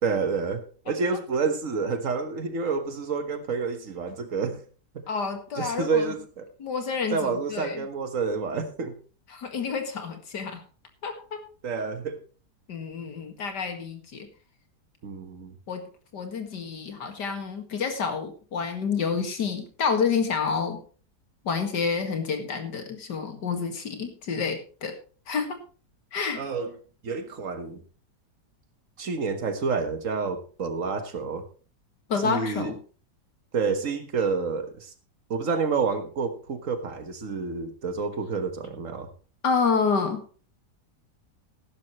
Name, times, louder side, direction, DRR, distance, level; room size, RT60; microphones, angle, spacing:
voice 1, 0.0-4.6 4.9-5.0 5.6-6.5 7.1-8.9 11.6-12.2 15.0-15.6 26.3-26.7 27.0-27.8 29.0-31.4 32.2-32.7 33.5-34.9 35.3-39.1, right 4 dB, 50° right, 8 dB, 1.7 m, -29 dB
voice 2, 5.1-6.2 6.6-7.9 9.3-10.6 11.0-11.4 12.7-14.3 15.7-15.9 16.1-20.8 21.4-24.9 25.3-25.6 26.1-26.5 32.1-32.8 39.4-40.2, left 5 dB, 85° left, 6 dB, 2.5 m, -29 dB
14.0 x 11.5 x 3.1 m, 0.37 s
omnidirectional pair, 1.8 m